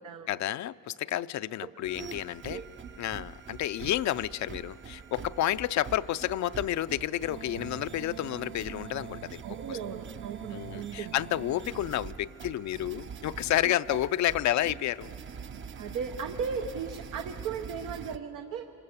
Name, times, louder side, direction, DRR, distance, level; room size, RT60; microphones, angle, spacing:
voice 1, 0.3-2.6 3.0-9.8 10.5-15.1, left 13 dB, 70° left, 0.5 m, -30 dB
sound 1, 1.8-18.2, right 7 dB, 40° right, 0.7 m, -43 dB
voice 2, 9.4-11.1 13.6-13.7 15.7-18.7, right 6 dB, 90° right, 1.0 m, -36 dB
26.0 x 23.0 x 7.2 m
cardioid pair, 90°, 30 cm